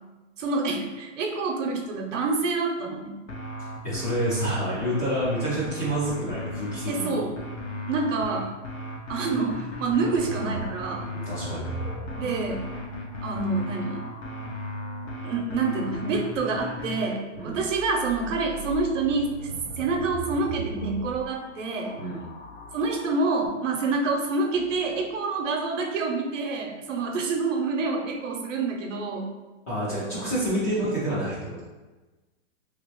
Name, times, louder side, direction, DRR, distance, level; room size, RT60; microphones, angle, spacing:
voice 1, 0.4-3.2 6.9-7.3 7.9-8.5 9.1-11.1 12.1-12.7 13.2-14.0 15.2-19.3 19.8-22.0 22.7-29.3 30.7-30.8, right 3 dB, 75° right, 2 dB, 0.8 m, -27 dB
sound 1, 3.3-17.0, left 1 dB, 85° left, 1.0 m, -36 dB
voice 2, 3.8-7.2 11.1-11.6 17.4-17.6 22.0-22.2 29.7-31.6, right 1 dB, 15° left, -9 dB, 0.3 m, -28 dB
sound 2, 9.8-14.5 17.4-23.6 24.5-25.1, right 2 dB, 50° left, 0.7 m, -40 dB
3.0 x 3.0 x 3.0 m, 1.2 s
hypercardioid pair, 145°, 37 cm